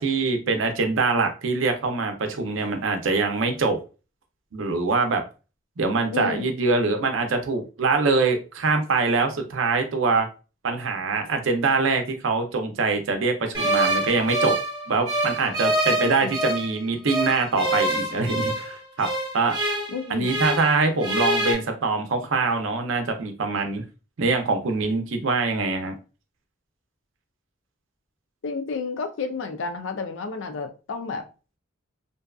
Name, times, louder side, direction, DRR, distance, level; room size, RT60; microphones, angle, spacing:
voice 1, 0.0-3.8 4.5-5.2 5.8-10.3 10.6-14.5 14.9-19.1 19.3-19.6 20.1-23.8 24.2-26.0, right 3 dB, 75° right, 0.5 m, -24 dB
voice 2, 6.1-6.5 16.0-16.3 19.9-20.3 28.4-31.3, left 4 dB, 70° left, 0.4 m, -31 dB
sound 1, 13.5-16.7 17.1-20.7 21.0-21.5, right 1 dB, 20° right, 0.8 m, -26 dB
2.6 x 2.3 x 2.3 m
head